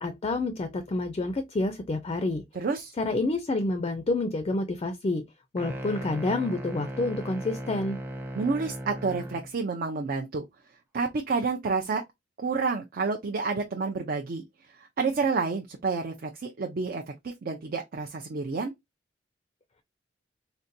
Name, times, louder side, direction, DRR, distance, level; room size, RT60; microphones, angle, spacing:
voice 1, 0.0-2.4 3.0-5.2 5.5-8.0, left 2 dB, 30° left, 0.4 m, -28 dB
voice 2, 2.6-2.9 8.4-10.4 10.9-12.0 12.4-14.4 15.0-18.7, right 4 dB, 50° right, 0.5 m, -29 dB
sound 1, 5.6-9.5, right 1 dB, 10° right, 0.6 m, -37 dB
3.9 x 2.2 x 2.6 m
head